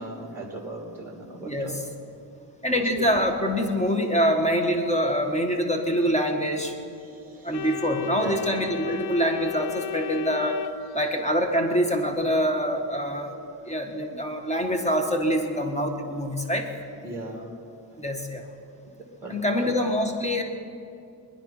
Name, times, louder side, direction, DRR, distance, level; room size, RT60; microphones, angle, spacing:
voice 1, 0.0-1.8 2.7-2.9 7.0-7.7 8.2-8.5 13.6-13.7 17.0-17.5 19.2-19.7, right 2 dB, 5° right, -3 dB, 2.6 m, -38 dB
voice 2, 1.4-1.8 2.6-6.8 7.4-10.6 10.9-13.4 13.6-16.7 18.0-18.4 19.3-20.4, equal, 15° left, 4 dB, 1.6 m, -25 dB
Organ, 7.5-11.5, left 9 dB, 65° left, 0.5 m, -35 dB
23.5 x 10.0 x 5.8 m, 2.5 s
wide cardioid pair, 150°, 43 cm